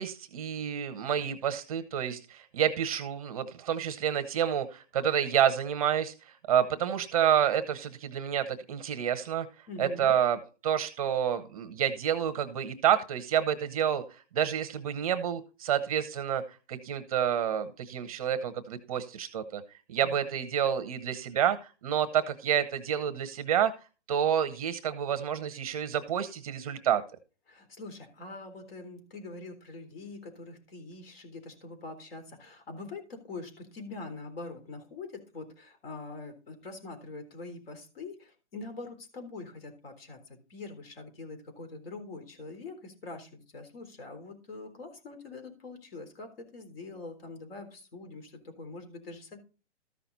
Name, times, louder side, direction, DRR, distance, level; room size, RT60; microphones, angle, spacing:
voice 1, 0.0-6.1 6.5-9.5 9.8-10.4 10.6-19.6 19.9-23.7 24.1-27.0, right 9 dB, 30° right, 10 dB, 0.8 m, -29 dB
voice 2, 9.7-10.2 20.0-20.3 27.5-49.4, left 3 dB, 55° left, 7 dB, 3.7 m, -44 dB
13.5 x 5.8 x 4.0 m, 0.33 s
hypercardioid pair, 155°, 35 cm